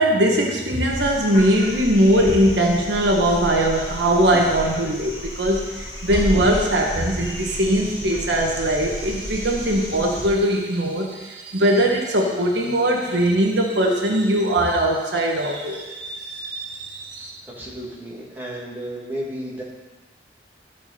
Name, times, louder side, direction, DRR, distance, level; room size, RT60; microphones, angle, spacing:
voice 1, 0.0-17.4, right 1 dB, 70° right, 0 dB, 1.5 m, -20 dB
sound 1, 0.9-10.2 12.3-12.4, equal, 20° left, 4.3 m, -32 dB
voice 2, 17.4-19.6, right 1 dB, 10° right, -6 dB, 2.6 m, -33 dB
13.5 x 8.3 x 4.3 m, 1.2 s
head